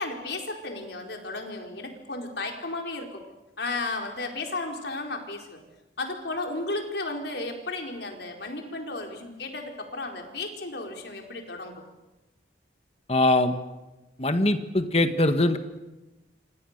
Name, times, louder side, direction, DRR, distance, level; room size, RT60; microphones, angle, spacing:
voice 1, 0.0-3.2 3.6-5.6 6.0-11.7, left 2 dB, 65° left, 2 dB, 4.6 m, -34 dB
voice 2, 13.1-13.5 14.2-15.6, left 1 dB, 35° left, 8 dB, 1.8 m, -22 dB
28.5 x 25.5 x 6.8 m, 1.1 s
head